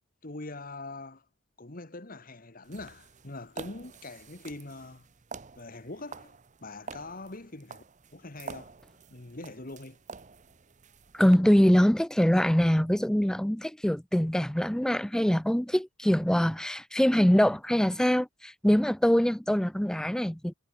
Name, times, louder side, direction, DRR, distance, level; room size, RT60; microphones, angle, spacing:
voice 1, 0.2-1.2 1.6-5.1 5.6-6.4 6.6-7.8 8.1-8.7 9.1-10.0, left 2 dB, 45° left, 1.8 m, -43 dB
sound 1, 2.6-11.3, right 4 dB, 40° right, 0.9 m, -48 dB
voice 2, 11.1-20.5, equal, 5° left, 0.4 m, -24 dB
head